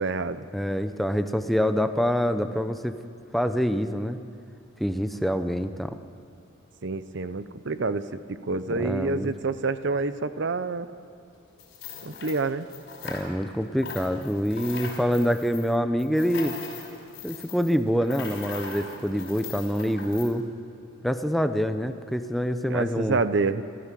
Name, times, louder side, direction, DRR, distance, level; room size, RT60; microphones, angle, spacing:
voice 1, 0.0-0.5 6.8-10.9 12.0-12.7 22.6-23.6, right 3 dB, 60° right, 13 dB, 0.8 m, -28 dB
voice 2, 0.5-2.9 3.3-4.2 4.8-6.0 8.8-9.3 13.0-16.5 17.2-20.4 21.0-23.2, equal, ahead, 9 dB, 0.7 m, -26 dB
sound 1, 11.6-13.5 13.8-20.3, left 5 dB, 55° left, 5.4 m, -40 dB
29.5 x 13.5 x 7.6 m, 2.6 s
head